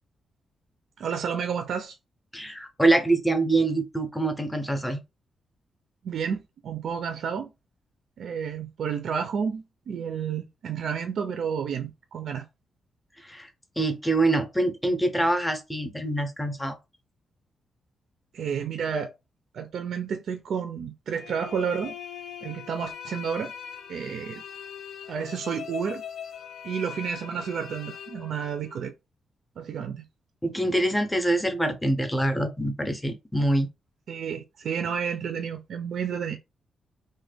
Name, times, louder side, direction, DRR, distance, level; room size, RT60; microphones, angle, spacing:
voice 1, 1.0-2.0 6.0-7.5 8.2-12.5 18.3-19.1 19.5-21.9 22.4-23.5 23.9-24.4 25.1-26.0 26.6-28.9 29.6-30.0 34.1-36.4, right 7 dB, 65° right, 0.3 m, -31 dB
voice 2, 2.3-5.0 13.2-13.5 13.8-16.8 30.4-33.7, right 2 dB, 5° left, 0.6 m, -25 dB
sound 1, 21.2-28.9, left 8 dB, 65° left, 0.4 m, -41 dB
2.9 x 2.1 x 3.3 m
wide cardioid pair, 160°, 0 cm